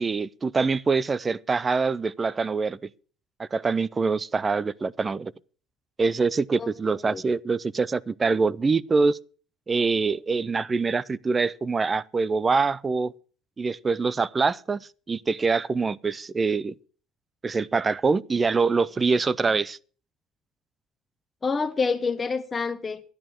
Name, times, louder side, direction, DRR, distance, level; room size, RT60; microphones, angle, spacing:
voice 1, 0.0-2.8 3.4-5.3 6.0-9.2 9.7-13.1 13.6-14.8 15.1-16.7 17.4-19.8, right 4 dB, 30° right, 0.5 m, -24 dB
voice 2, 6.6-7.2 21.4-23.0, left 4 dB, 30° left, 1.0 m, -28 dB
11.0 x 10.5 x 6.3 m
supercardioid pair, 75°, 0 cm